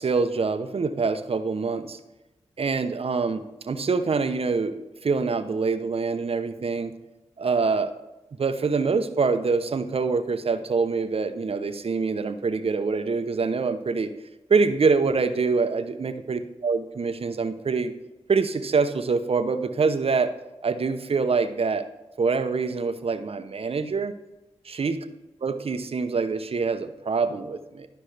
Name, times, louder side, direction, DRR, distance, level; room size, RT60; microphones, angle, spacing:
voice 1, 0.0-2.0 2.6-6.9 7.4-7.9 8.4-14.1 14.5-17.9 18.3-20.3 20.6-21.9 22.2-24.1 24.7-25.0 25.4-27.9, right 4 dB, 55° right, 10 dB, 0.8 m, -25 dB
12.0 x 5.3 x 3.4 m, 1.0 s
cardioid pair, 40°, 12 cm